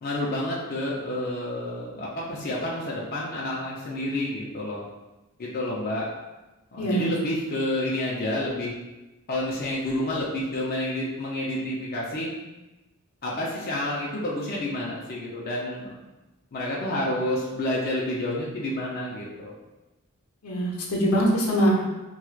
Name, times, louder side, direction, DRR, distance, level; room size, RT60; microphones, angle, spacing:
voice 1, 0.0-4.8 5.4-6.1 6.7-8.7 9.3-12.3 13.2-15.9 16.5-19.5, left 1 dB, 45° left, -5 dB, 0.5 m, -29 dB
voice 2, 6.8-7.1 20.4-21.8, right 1 dB, 80° left, -3 dB, 0.8 m, -23 dB
4.4 x 2.3 x 2.4 m, 1.1 s
head